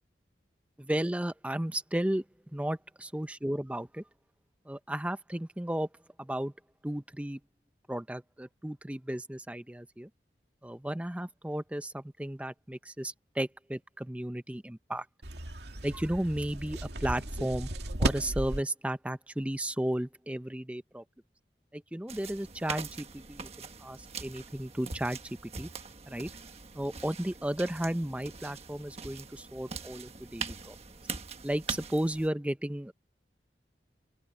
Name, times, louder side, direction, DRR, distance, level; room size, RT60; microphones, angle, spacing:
voice 1, 0.8-2.2 2.5-4.0 4.7-5.9 6.2-6.5 6.8-7.4 7.9-10.1 10.6-15.1 15.8-17.7 18.0-21.0 21.7-25.7 26.1-26.3 26.7-30.8 31.4-32.9, right 1 dB, 10° right, 0.5 m, -34 dB
sound 1, 15.2-18.6, right 1 dB, 75° right, 2.3 m, -34 dB
sound 2, 22.1-32.3, right 5 dB, 35° right, 1.4 m, -42 dB
open air
head